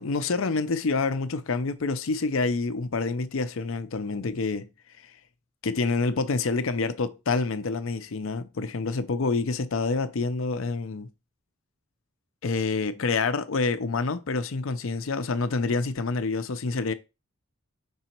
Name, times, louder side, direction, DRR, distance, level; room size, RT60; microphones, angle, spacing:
voice 1, 0.0-4.7 5.0-5.1 5.6-11.1 12.4-16.9, left 4 dB, 70° left, 0.6 m, -27 dB
5.4 x 4.0 x 4.4 m
head